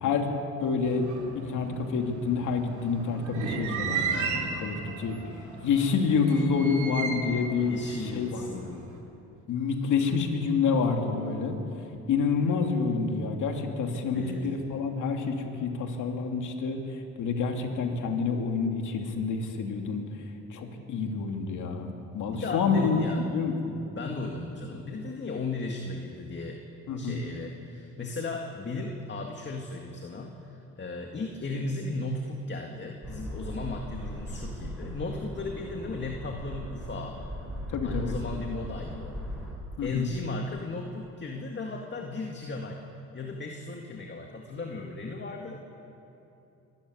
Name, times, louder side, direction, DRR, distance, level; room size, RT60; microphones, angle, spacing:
voice 1, 0.0-1.1 1.3-5.2 5.6-7.7 8.0-8.6 9.5-11.6 12.1-20.0 20.5-23.0 23.3-23.8 26.9-27.2 37.7-38.1 39.8-40.1, left 5 dB, 80° left, 3 dB, 2.5 m, -28 dB
sound 1, 0.8-9.0, right 4 dB, 75° right, 3.5 m, -35 dB
voice 2, 7.7-8.9 14.1-14.5 22.3-23.3 23.9-26.6 27.0-37.2 37.8-39.2 39.8-42.8 43.1-45.6, left 3 dB, 35° left, 2 dB, 2.0 m, -36 dB
sound 2, 33.0-39.5, equal, ahead, 5.8 m, -38 dB
23.5 x 13.5 x 9.7 m, 2.9 s
cardioid pair, 90°, 30 cm